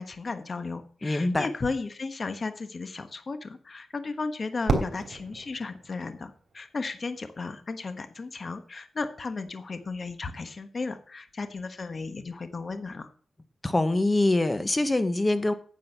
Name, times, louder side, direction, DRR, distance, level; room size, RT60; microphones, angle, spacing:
voice 1, 0.0-13.1, left 3 dB, 40° left, 9 dB, 1.3 m, -35 dB
voice 2, 1.0-1.5 13.6-15.5, left 2 dB, 20° left, 11 dB, 1.0 m, -24 dB
Fireworks, 4.6-6.9, right 3 dB, 50° right, 3.2 m, -31 dB
9.8 x 8.7 x 5.8 m, 0.43 s
wide cardioid pair, 135°, 0 cm